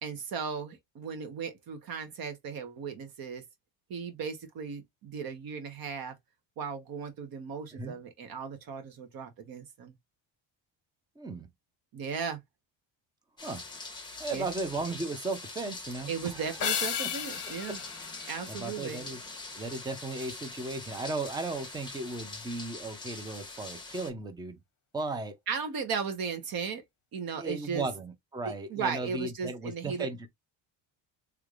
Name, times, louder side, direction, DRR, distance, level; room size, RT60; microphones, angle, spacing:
voice 1, 0.0-3.4 3.9-6.2 6.6-9.9 11.9-12.4 14.3-14.5 16.1-17.8 18.3-19.0 25.5-26.8 27.1-27.8 28.4-30.1, right 6 dB, 50° right, 1.1 m, -36 dB
voice 2, 11.2-11.5 13.4-13.6 14.2-16.5 17.0-17.1 17.7-17.8 18.5-19.2 19.5-24.6 24.9-25.4 27.4-30.3, right 3 dB, 10° right, 0.5 m, -36 dB
sound 1, 13.4-24.1, left 3 dB, 10° left, 1.2 m, -43 dB
sound 2, 16.6-19.2, left 9 dB, 40° left, 0.9 m, -34 dB
3.3 x 3.2 x 2.4 m
cardioid pair, 165°, 46 cm